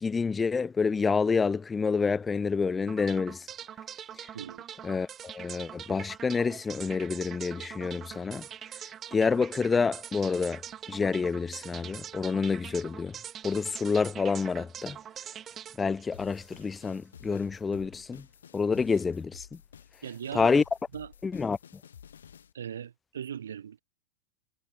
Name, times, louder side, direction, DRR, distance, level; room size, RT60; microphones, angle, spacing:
voice 1, 0.0-3.5 4.8-8.5 9.1-10.6 10.9-13.2 13.4-15.0 15.8-18.2 18.5-19.5 20.3-20.6 21.2-21.6, left 5 dB, 15° left, 0.4 m, -28 dB
sound 1, 2.9-17.0, right 9 dB, 25° right, 2.1 m, -44 dB
sound 2, 16.1-22.5, left 8 dB, 65° left, 3.1 m, -52 dB
voice 2, 20.0-20.6 20.9-21.1 22.5-23.8, right 8 dB, 65° right, 1.6 m, -39 dB
figure-of-eight pair, 90°, 0 cm